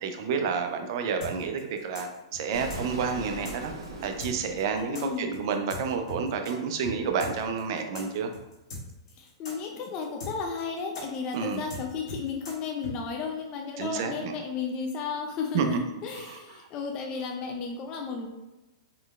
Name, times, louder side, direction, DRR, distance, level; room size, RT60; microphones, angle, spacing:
voice 1, 0.0-3.7 4.0-8.3 11.3-11.6 13.8-14.3 15.5-15.8, right 5 dB, 55° right, 6 dB, 0.5 m, -29 dB
sound 1, 1.2-6.5 6.8-6.9 7.2-12.9, left 1 dB, 75° left, 1.3 m, -40 dB
Explosion, 2.5-5.4, right 2 dB, 80° right, 0.9 m, -40 dB
voice 2, 4.9-5.4 9.1-18.3, left 5 dB, 35° left, 1 dB, 0.5 m, -34 dB
3.8 x 3.1 x 2.4 m, 1.0 s
hypercardioid pair, 130°, 3 cm